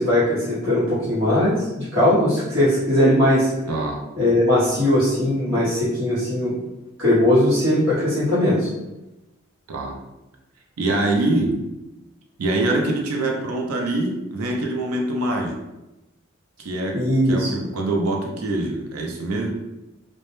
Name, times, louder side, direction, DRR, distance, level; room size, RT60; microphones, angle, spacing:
voice 1, 0.0-3.5 4.2-6.6 7.0-8.7 16.9-17.5, left 1 dB, 60° right, -11 dB, 0.9 m, -19 dB
voice 2, 3.7-4.0 9.7-10.0 10.8-11.6 12.4-15.6 16.6-19.5, right 2 dB, 85° right, 1 dB, 0.5 m, -24 dB
2.1 x 2.0 x 2.9 m, 0.99 s
head